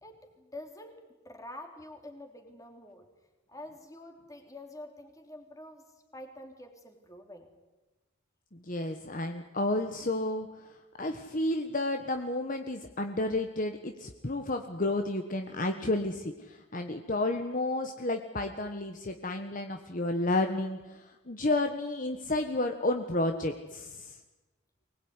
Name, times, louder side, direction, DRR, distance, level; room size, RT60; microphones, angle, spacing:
voice 1, 0.0-3.1 3.5-5.8 6.1-7.5, left 1 dB, 15° left, 4 dB, 3.5 m, -47 dB
voice 2, 8.5-10.5 11.0-24.2, left 2 dB, 40° left, 5 dB, 1.4 m, -31 dB
24.0 x 20.5 x 9.8 m, 1.1 s
head